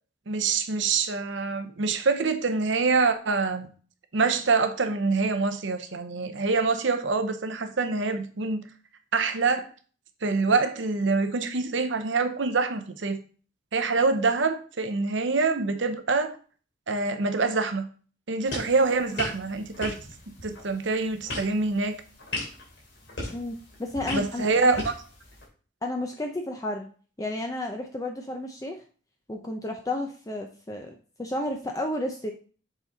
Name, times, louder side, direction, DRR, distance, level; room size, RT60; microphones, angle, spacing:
voice 1, 0.3-3.7 4.1-8.7 9.1-9.7 10.2-13.2 13.7-16.3 16.9-17.9 18.3-20.0 20.4-22.0 24.1-24.9, right 4 dB, 70° right, 0.8 m, -25 dB
sound 1, 18.4-25.5, left 2 dB, 65° left, 2.8 m, -38 dB
voice 2, 23.3-24.8 25.8-26.9 27.2-28.8 29.3-32.3, left 1 dB, 15° left, 0.5 m, -32 dB
7.2 x 4.1 x 4.0 m
head